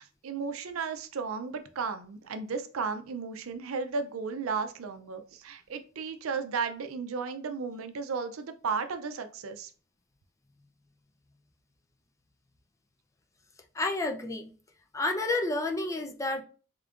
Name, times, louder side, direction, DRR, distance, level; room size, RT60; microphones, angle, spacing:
voice 1, 0.0-9.7, right 5 dB, 85° right, 9 dB, 0.5 m, -34 dB
voice 2, 13.8-14.5 14.9-16.4, left 2 dB, 15° left, 3 dB, 0.4 m, -30 dB
3.6 x 3.5 x 2.4 m, 0.38 s
head